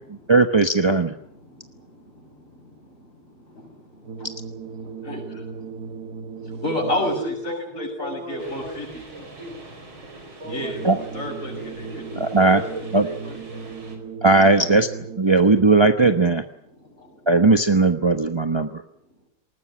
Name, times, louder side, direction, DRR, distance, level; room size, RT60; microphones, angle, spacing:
voice 1, 0.3-1.1 10.8-11.0 12.2-12.6 12.9-13.0 14.2-14.9 15.2-16.4 17.3-18.8, right 3 dB, 30° right, 7 dB, 0.5 m, -17 dB
voice 2, 1.4-4.3 4.7-6.0 6.3-9.0 10.5-11.9 12.1-12.3 14.5-14.7 15.3-15.4 16.0-16.1 16.8-17.2, left 1 dB, 35° left, 2 dB, 7.8 m, -33 dB
sound 1, 4.0-7.5 10.4-15.5, right 5 dB, 50° right, 1.6 m, -37 dB
voice 3, 6.8-9.7 10.4-13.6, equal, 15° right, 4 dB, 4.8 m, -35 dB
sound 2, 8.4-14.0, right 2 dB, 70° right, 5.1 m, -44 dB
20.5 x 19.0 x 9.8 m, 0.69 s
omnidirectional pair, 2.3 m